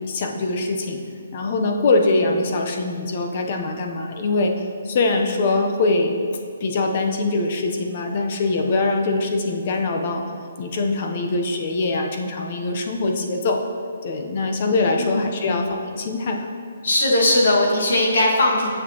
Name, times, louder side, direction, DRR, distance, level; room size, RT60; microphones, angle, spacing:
voice 1, 0.1-1.0 1.3-4.5 4.8-6.2 6.6-10.2 10.6-13.6 14.0-16.5, left 3 dB, 35° left, 3 dB, 0.6 m, -23 dB
voice 2, 15.0-15.7 16.8-18.7, left 1 dB, 65° left, -2 dB, 1.7 m, -19 dB
9.3 x 6.4 x 2.9 m, 2.3 s
hypercardioid pair, 170°, 0 cm